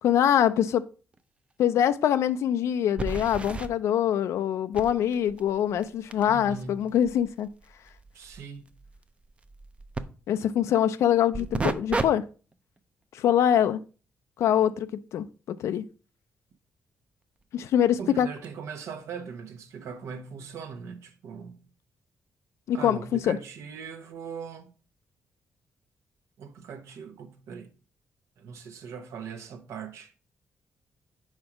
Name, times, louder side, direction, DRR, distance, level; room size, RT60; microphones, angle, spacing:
voice 1, 0.0-0.9 1.6-7.5 10.3-12.2 13.1-13.8 14.4-15.9 17.5-18.3 22.7-23.4, left 10 dB, 80° left, 0.3 m, -24 dB
sound 1, 1.1-1.2 1.6-1.7 3.0-3.7 4.7-10.0 11.3-12.1 12.5-12.8 17.4-17.5 18.4-18.5, right 3 dB, 25° right, 0.4 m, -34 dB
voice 2, 6.3-6.9 8.1-8.7 18.0-21.6 22.7-24.7 26.4-27.7 28.4-30.1, right 6 dB, 85° right, 0.8 m, -40 dB
4.7 x 4.3 x 4.8 m
cardioid pair, 115°, 5 cm